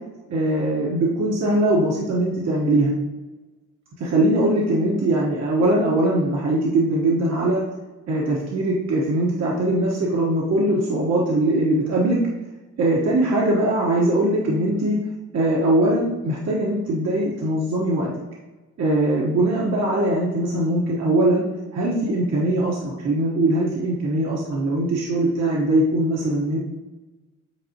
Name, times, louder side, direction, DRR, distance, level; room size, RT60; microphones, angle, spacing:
voice 1, 0.3-2.9 4.0-7.6 8.1-12.2 12.8-15.0 15.3-18.1 18.8-21.5 21.7-26.6, right 1 dB, 60° right, -4 dB, 1.3 m, -21 dB
8.6 x 4.2 x 2.9 m, 1.1 s
cardioid pair, 90°, 30 cm